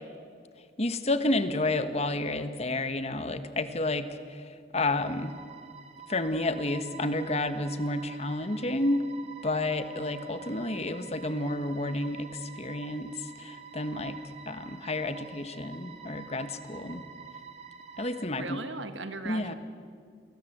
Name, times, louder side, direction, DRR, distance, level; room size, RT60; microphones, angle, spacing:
voice 1, 0.8-4.4 4.7-5.3 6.1-9.0 9.4-14.2 14.4-17.0 18.0-18.6 19.2-19.5, left 2 dB, 35° left, 10 dB, 1.5 m, -30 dB
sound 1, 5.0-18.3, right 6 dB, 35° right, 2.1 m, -48 dB
voice 2, 18.4-19.5, right 3 dB, 80° right, 9 dB, 1.5 m, -38 dB
28.5 x 21.5 x 8.1 m, 2.2 s
head